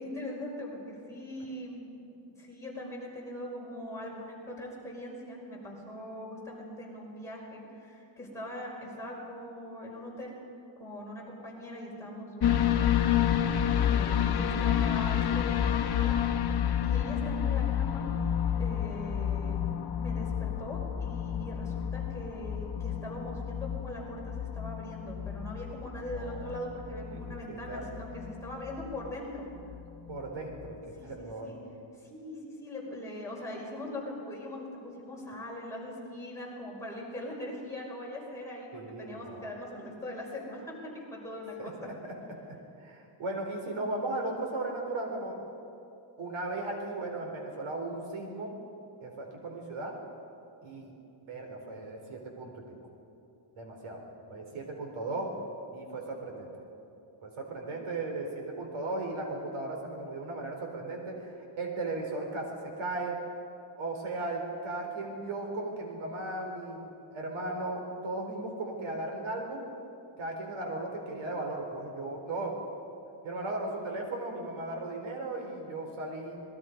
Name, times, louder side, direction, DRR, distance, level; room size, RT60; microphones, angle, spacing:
voice 1, 0.0-2.1 2.4-10.4 10.8-12.9 13.9-18.1 18.6-19.7 20.0-29.5 31.0-31.6 31.9-41.9, left 1 dB, 5° left, -5 dB, 5.3 m, -41 dB
sound 1, 12.4-30.2 30.6-30.7, left 9 dB, 50° left, 1.2 m, -30 dB
voice 2, 26.1-26.5 27.1-27.2 27.5-27.9 30.1-30.8 31.0-31.5 38.7-39.5 41.6-42.1 42.8-45.4 46.2-48.5 49.0-49.9 50.6-50.9 51.3-52.5 52.8-52.9 53.5-54.0 54.3-55.3 55.7-56.5 57.2-63.1 63.8-66.8 67.1-69.6 70.2-72.6 73.2-76.4, right 2 dB, 80° right, 2 dB, 4.3 m, -36 dB
27.0 x 21.5 x 5.3 m, 2.7 s
wide cardioid pair, 170°, 49 cm